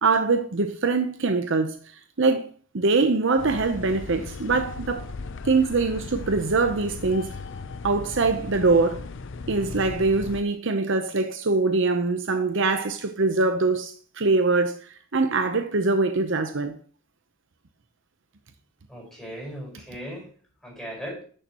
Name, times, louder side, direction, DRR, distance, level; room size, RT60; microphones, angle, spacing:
voice 1, 0.0-1.8 2.2-5.1 5.4-7.3 7.8-9.0 9.5-14.7 15.1-16.8, right 3 dB, 60° right, 0.8 m, -23 dB
sound 1, 3.4-10.4, left 4 dB, 60° left, 0.6 m, -37 dB
voice 2, 18.9-20.3 20.6-21.2, equal, ahead, 5.0 m, -37 dB
11.0 x 6.8 x 3.0 m
head